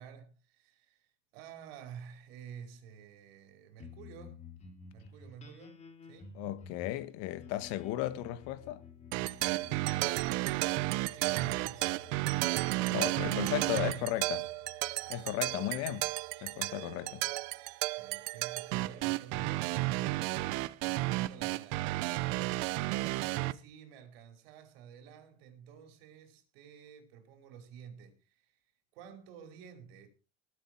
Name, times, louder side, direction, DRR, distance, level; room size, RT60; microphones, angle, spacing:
voice 1, 0.0-4.5 4.9-6.4 11.1-12.5 13.0-14.4 18.0-22.7 22.9-28.6 28.9-30.1, right 7 dB, 85° right, 4.8 m, -51 dB
sound 1, 3.8-18.5, left 5 dB, 25° left, 2.9 m, -54 dB
voice 2, 6.3-8.8 12.9-14.4 15.1-16.1 16.4-17.3, left 14 dB, 60° left, 1.3 m, -35 dB
sound 2, 9.1-23.5, right 20 dB, 65° right, 0.8 m, -33 dB
20.0 x 8.4 x 4.5 m
cardioid pair, 170°, 29 cm